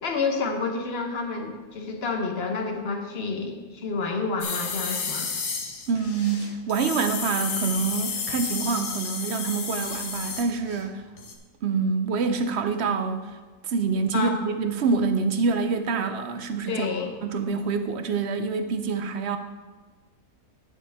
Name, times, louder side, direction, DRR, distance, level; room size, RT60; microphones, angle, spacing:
voice 1, 0.0-5.3 14.1-14.4 16.7-17.2, left 4 dB, 45° left, 3 dB, 1.2 m, -29 dB
sound 1, 4.4-10.9 11.2-11.3, left 5 dB, 70° left, 1.4 m, -32 dB
voice 2, 5.9-11.0 11.6-13.4 13.6-16.9 17.2-19.4, right 5 dB, 70° right, 8 dB, 0.6 m, -26 dB
9.9 x 7.5 x 3.5 m, 1.3 s
omnidirectional pair, 1.6 m